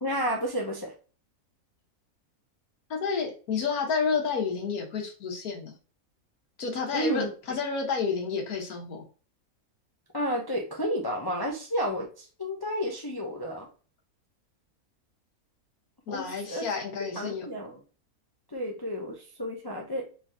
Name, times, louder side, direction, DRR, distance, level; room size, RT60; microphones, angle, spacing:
voice 1, 0.0-0.9 6.9-7.3 10.1-13.7 16.1-16.7 17.2-17.8 18.5-20.1, equal, 30° left, -1 dB, 0.4 m, -31 dB
voice 2, 2.9-5.7 6.6-9.0 16.1-17.4, left 5 dB, 75° left, 0 dB, 1.6 m, -30 dB
3.9 x 3.2 x 2.6 m, 0.36 s
omnidirectional pair, 1.6 m